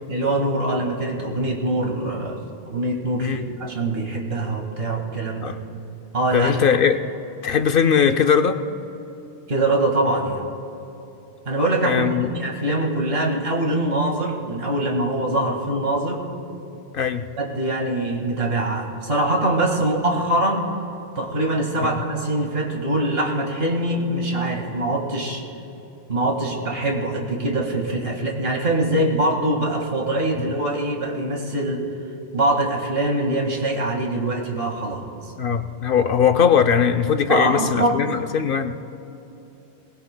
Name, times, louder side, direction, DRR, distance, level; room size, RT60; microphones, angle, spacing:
voice 1, 0.1-2.4 2.7-5.6 6.1-6.5 9.5-10.4 11.5-16.2 17.4-20.7 21.2-25.4 26.1-31.8 32.3-35.0 37.3-38.0, right 1 dB, 55° right, 1 dB, 2.1 m, -23 dB
voice 2, 6.3-7.0 7.4-8.6 11.8-12.3 16.9-17.2 30.4-30.5 35.4-38.7, left 7 dB, 60° left, 8 dB, 0.7 m, -20 dB
22.0 x 19.5 x 2.2 m, 2.9 s
omnidirectional pair, 1.2 m